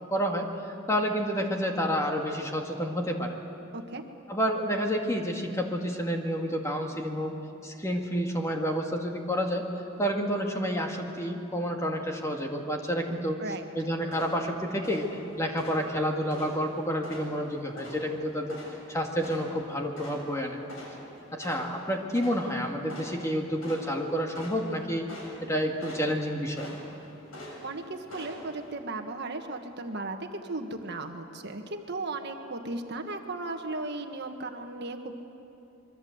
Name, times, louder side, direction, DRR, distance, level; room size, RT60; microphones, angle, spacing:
voice 1, 0.1-0.5 0.9-3.3 4.3-7.3 7.6-9.7 10.0-13.4 13.8-15.1 15.4-18.6 18.9-20.6 21.3-25.1 25.4-26.8, equal, 15° left, 2 dB, 2.1 m, -29 dB
sound 1, 14.0-28.8, left 1 dB, 90° left, 7.2 m, -46 dB
voice 2, 27.6-35.1, right 2 dB, 55° right, 5 dB, 1.6 m, -36 dB
25.5 x 23.0 x 8.0 m, 2.9 s
head